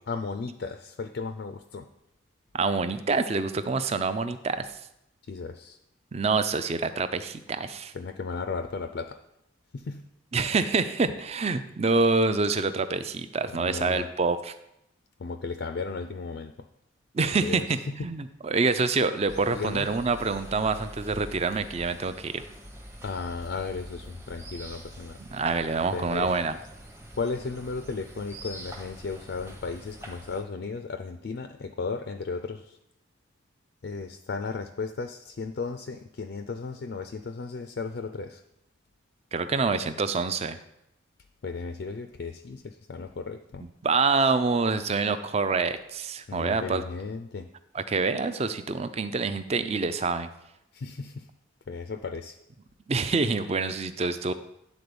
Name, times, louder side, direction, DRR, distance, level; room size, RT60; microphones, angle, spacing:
voice 1, 0.1-1.9 5.2-5.8 7.9-9.2 9.7-10.1 13.5-14.1 15.2-16.5 17.4-18.1 19.5-19.9 23.0-25.2 25.9-26.3 27.2-32.8 33.8-38.4 41.4-43.7 46.3-47.5 50.7-51.3 51.7-52.4, left 4 dB, 55° left, 8 dB, 0.4 m, -35 dB
voice 2, 2.5-4.7 6.1-7.9 10.3-14.5 17.1-22.4 25.2-26.6 39.3-40.6 43.8-46.8 47.7-50.3 52.9-54.3, right 4 dB, 30° right, 11 dB, 0.4 m, -26 dB
sound 1, 19.3-30.4, equal, 10° right, 0.8 m, -45 dB
9.4 x 4.0 x 6.9 m, 0.83 s
head